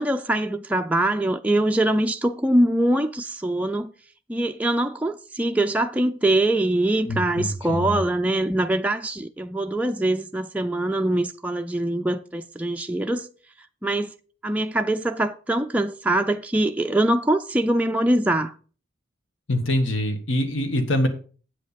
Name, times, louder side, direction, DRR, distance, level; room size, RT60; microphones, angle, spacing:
voice 1, 0.0-3.9 4.3-13.3 13.8-14.1 14.4-18.5, right 1 dB, 5° right, 0.3 m, -23 dB
voice 2, 7.0-8.0 19.5-21.1, left 1 dB, 75° left, 1.6 m, -24 dB
8.1 x 7.7 x 5.1 m
head